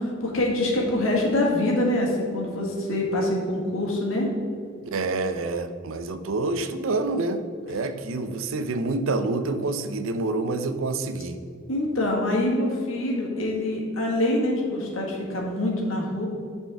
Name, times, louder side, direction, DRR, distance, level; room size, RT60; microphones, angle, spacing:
voice 1, 0.0-4.3 11.7-16.3, left 1 dB, 90° left, -1 dB, 1.7 m, -25 dB
voice 2, 4.8-11.4, right 3 dB, 85° right, 9 dB, 0.5 m, -27 dB
10.5 x 4.4 x 3.4 m, 2.3 s
head